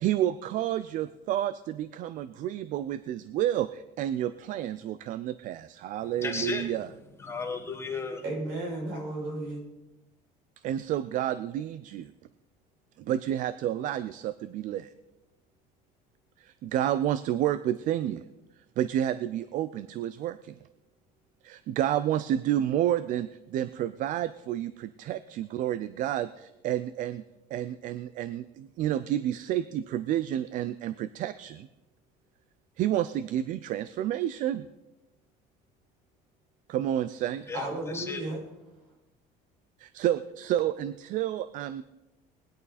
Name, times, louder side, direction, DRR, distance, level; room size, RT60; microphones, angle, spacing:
voice 1, 0.0-6.9 10.6-12.1 13.0-14.9 16.4-18.2 18.8-20.6 21.4-27.2 27.5-31.7 32.8-34.7 36.7-37.7 39.8-41.8, right 11 dB, 50° right, 15 dB, 0.5 m, -30 dB
voice 2, 6.2-6.7 7.2-8.2 37.5-38.2, left 4 dB, 15° left, 3 dB, 1.4 m, -34 dB
voice 3, 8.2-9.6 37.5-38.4, right 1 dB, 75° right, 0 dB, 6.3 m, -33 dB
19.0 x 11.5 x 4.2 m, 0.97 s
cardioid pair, 150°, 17 cm